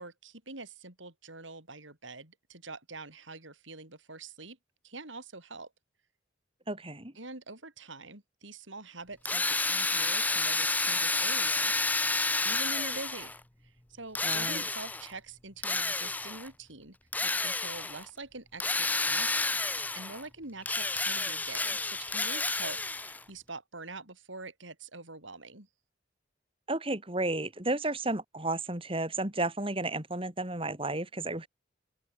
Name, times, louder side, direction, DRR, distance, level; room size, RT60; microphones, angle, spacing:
voice 1, 0.0-4.6 4.8-5.7 7.1-11.7 12.4-17.0 17.2-25.7, right 3 dB, 75° right, 6.0 m, -45 dB
voice 2, 6.7-7.1 14.2-14.6 26.7-31.5, right 2 dB, 30° right, 3.3 m, -32 dB
Drill, 9.3-13.4 14.1-15.1 15.6-16.5 17.1-18.0 18.6-20.2 20.6-23.2, left 3 dB, 10° left, 0.5 m, -30 dB
open air
head